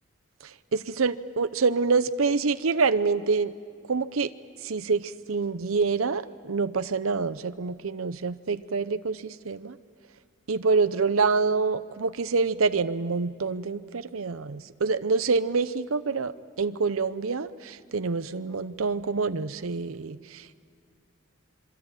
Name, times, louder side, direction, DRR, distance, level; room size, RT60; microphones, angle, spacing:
voice 1, 0.4-3.5 3.9-4.3 4.6-9.8 10.5-16.3 16.6-20.6, right 4 dB, 85° right, 12 dB, 0.7 m, -26 dB
27.0 x 23.5 x 9.0 m, 2.3 s
head